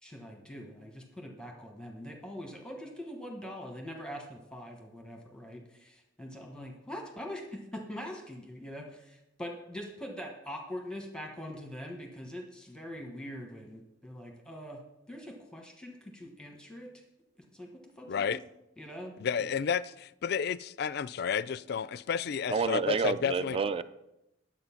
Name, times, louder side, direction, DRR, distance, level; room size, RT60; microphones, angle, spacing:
voice 1, 0.0-14.8 15.1-17.0 17.5-18.4 18.8-19.1 19.4-19.5, equal, 5° left, 2 dB, 1.2 m, -43 dB
voice 2, 18.1-18.4 19.2-23.6, left 7 dB, 55° left, 18 dB, 0.3 m, -31 dB
voice 3, 22.5-23.8, right 4 dB, 30° right, 13 dB, 0.4 m, -29 dB
10.5 x 7.5 x 5.8 m, 0.89 s
head